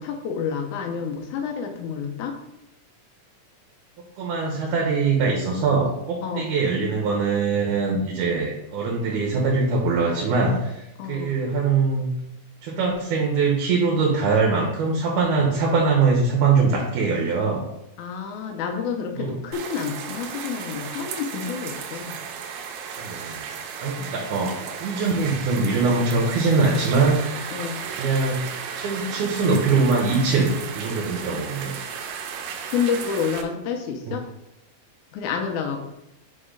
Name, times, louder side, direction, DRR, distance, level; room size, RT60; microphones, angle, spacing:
voice 1, 0.0-2.4 6.2-6.5 11.0-11.4 18.0-22.1 24.0-24.3 27.5-27.9 32.7-34.3 35.1-35.8, left 6 dB, 75° left, 4 dB, 2.0 m, -29 dB
voice 2, 4.2-12.1 12.6-17.6 19.2-19.4 23.0-23.5 23.8-27.3 28.0-28.4 28.8-31.8 34.1-34.2, right 4 dB, 70° right, 0 dB, 2.2 m, -22 dB
sound 1, 19.5-33.4, right 7 dB, 90° right, 2.3 m, -34 dB
5.4 x 4.2 x 5.0 m, 0.88 s
omnidirectional pair, 3.9 m